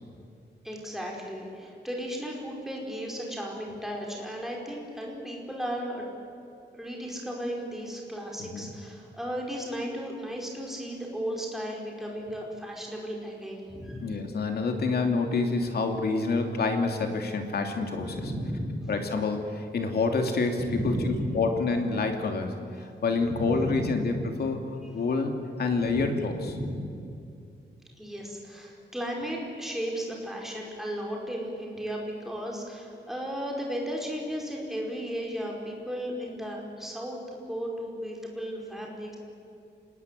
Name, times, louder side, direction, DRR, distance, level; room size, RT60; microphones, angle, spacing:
voice 1, 0.6-6.2 6.7-14.1 18.0-18.8 20.6-21.4 23.2-24.0 25.8-26.0 26.4-26.7 28.0-39.1, equal, ahead, -1 dB, 4.8 m, -35 dB
voice 2, 14.0-18.2 18.9-26.4, left 3 dB, 60° left, 4 dB, 2.7 m, -28 dB
27.0 x 20.0 x 8.3 m, 2.5 s
wide cardioid pair, 170°, 19 cm